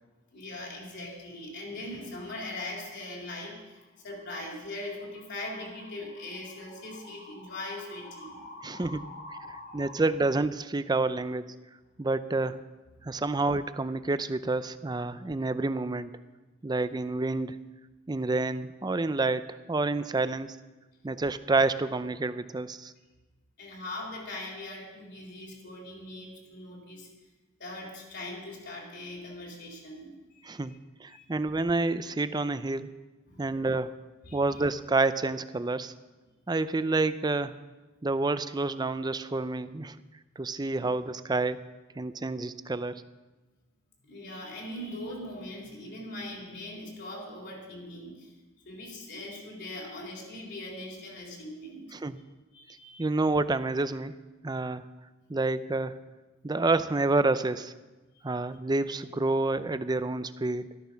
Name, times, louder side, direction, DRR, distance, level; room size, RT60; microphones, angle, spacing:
voice 1, 0.3-10.0 13.0-13.1 23.6-27.1 27.6-30.5 31.1-31.3 33.3-33.6 34.2-34.6 40.8-40.9 44.0-48.4 48.6-51.9 52.5-53.0, left 1 dB, 60° left, -2 dB, 4.1 m, -41 dB
voice 2, 8.6-9.0 9.7-11.6 12.0-12.6 13.0-16.1 16.6-17.6 18.1-20.6 21.0-22.9 30.4-32.9 33.4-33.9 34.3-35.9 36.5-37.6 38.0-40.0 40.4-41.7 42.0-43.0 51.9-52.2 53.0-54.2 54.4-54.8 55.3-56.0 56.4-57.7 58.2-60.7, right 3 dB, 20° right, 13 dB, 0.5 m, -28 dB
13.0 x 13.0 x 5.8 m, 1.2 s
head